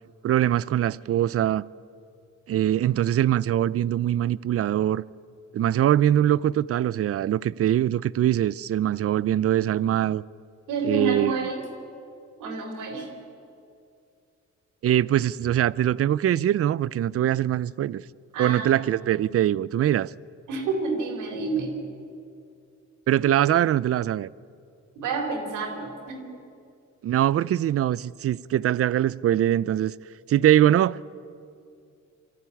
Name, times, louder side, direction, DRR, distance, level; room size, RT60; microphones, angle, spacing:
voice 1, 0.2-1.6 2.5-5.0 5.5-10.2 10.8-11.4 14.8-18.0 18.4-20.1 23.1-24.3 27.0-29.9 30.3-31.0, right 11 dB, 50° right, 0.5 m, -22 dB
voice 2, 10.7-11.6 12.4-13.1 18.3-18.6 20.5-21.8 25.0-26.3, right 4 dB, 90° right, 4.2 m, -29 dB
23.5 x 14.0 x 9.9 m
cardioid pair, 90°, 30 cm